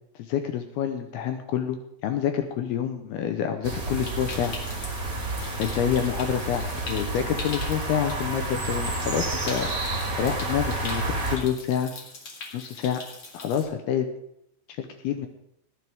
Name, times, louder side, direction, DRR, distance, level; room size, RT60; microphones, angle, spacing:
voice 1, 0.2-4.5 5.6-11.9 12.5-13.0 13.3-14.1 14.8-15.3, left 9 dB, 75° left, 6 dB, 2.5 m, -28 dB
sound 1, 3.6-11.4, right 2 dB, 25° right, 2.1 m, -30 dB
Stream, 3.9-13.6, left 3 dB, 40° left, 2.5 m, -42 dB
18.5 x 10.5 x 3.6 m, 0.76 s
omnidirectional pair, 5.2 m